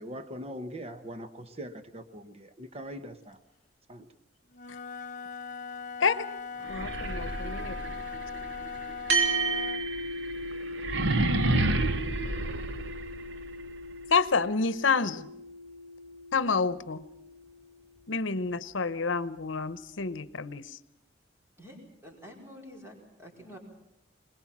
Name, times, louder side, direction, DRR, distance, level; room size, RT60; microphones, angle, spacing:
voice 1, 0.0-3.4 3.9-4.1, equal, 35° right, 10 dB, 1.1 m, -41 dB
Wind instrument woodwind instrument, 4.5-9.9, left 5 dB, 45° left, 1.2 m, -39 dB
sound 1, 6.6-13.5, right 2 dB, 70° right, 1.1 m, -31 dB
voice 2, 6.7-7.8 14.1-15.3 16.3-17.0 18.1-20.7, left 4 dB, 80° left, 15 dB, 0.9 m, -28 dB
sound 2, 9.1-17.8, right 3 dB, 90° right, 4.0 m, -35 dB
voice 3, 21.6-23.6, equal, 15° right, 0 dB, 4.7 m, -48 dB
22.5 x 20.5 x 7.4 m, 0.84 s
head